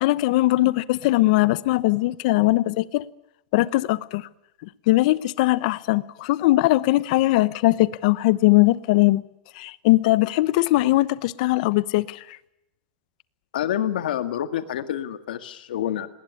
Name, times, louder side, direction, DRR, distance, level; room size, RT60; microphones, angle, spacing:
voice 1, 0.0-3.1 3.5-4.3 4.9-9.2 9.6-12.4, left 18 dB, 55° left, 0.9 m, -20 dB
voice 2, 13.5-16.1, left 11 dB, 85° left, 1.8 m, -27 dB
20.5 x 19.0 x 9.9 m
supercardioid pair, 155°, 5 cm